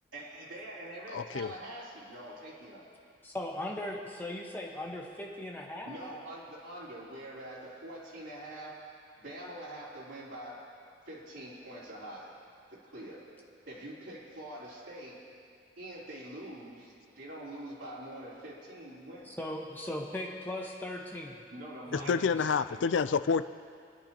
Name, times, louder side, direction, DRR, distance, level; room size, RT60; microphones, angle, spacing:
voice 1, 0.1-2.8 5.9-8.8 9.2-10.6 11.0-12.3 12.7-13.2 13.7-15.2 15.8-19.3 21.5-22.8, right 1 dB, 90° right, -9 dB, 3.6 m, -44 dB
voice 2, 1.1-1.5 21.9-23.4, left 5 dB, 85° left, 13 dB, 0.4 m, -28 dB
voice 3, 3.2-6.0 19.3-21.4 21.9-22.1, left 1 dB, 10° left, -1 dB, 1.2 m, -38 dB
27.5 x 10.0 x 2.9 m, 2.3 s
head